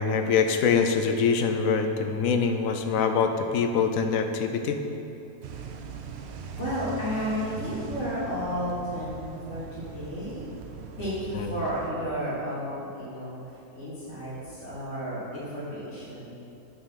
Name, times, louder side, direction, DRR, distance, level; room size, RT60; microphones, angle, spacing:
voice 1, 0.0-4.8 11.4-11.5, left 5 dB, 70° left, 7 dB, 1.0 m, -24 dB
sound 1, 5.4-11.9, right 5 dB, 60° right, 0.7 m, -40 dB
voice 2, 6.6-10.5 11.0-13.4 13.7-16.3, equal, 50° left, -10 dB, 2.7 m, -32 dB
7.0 x 5.5 x 6.4 m, 2.7 s
omnidirectional pair, 1.5 m